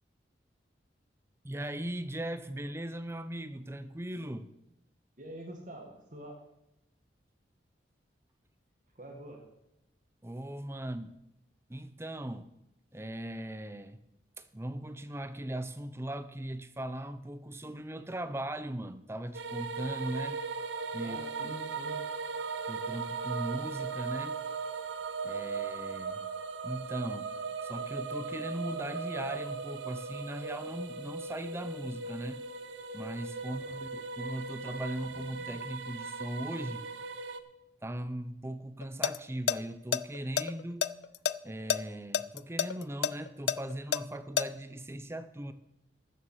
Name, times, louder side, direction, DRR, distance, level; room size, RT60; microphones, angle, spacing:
voice 1, 1.4-4.5 10.2-11.2 11.7-12.5 12.9-14.0 14.4-20.4 20.9-21.2 22.6-24.4 25.2-26.3 26.6-27.4 27.6-32.4 32.9-36.8 37.8-40.9 41.4-45.5, right 1 dB, 15° right, 0.6 m, -39 dB
voice 2, 5.2-6.4 9.0-9.4 21.0-22.0 33.5-33.8, right 1 dB, 45° right, 2.0 m, -46 dB
sound 1, 19.3-37.4, right 4 dB, 85° right, 0.9 m, -38 dB
sound 2, 38.8-39.2 39.5-39.6 39.9-41.3 41.7-41.8 42.1-44.4, left 7 dB, 70° left, 0.4 m, -28 dB
13.0 x 7.4 x 6.4 m
head